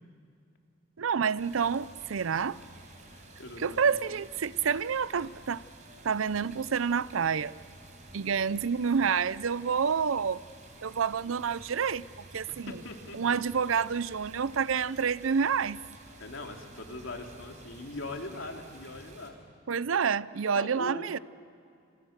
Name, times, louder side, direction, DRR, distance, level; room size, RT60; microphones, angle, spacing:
voice 1, 1.0-2.6 3.6-5.6 6.0-7.5 8.1-10.4 10.8-12.0 12.3-12.8 13.1-15.8 19.7-21.2, right 6 dB, 85° right, 0.6 m, -28 dB
sound 1, 1.4-19.3, right 2 dB, 40° right, 4.6 m, -51 dB
voice 2, 3.1-3.9 12.5-13.2 16.2-19.4 20.5-21.1, left 2 dB, 80° left, 2.9 m, -41 dB
29.0 x 29.0 x 6.6 m
head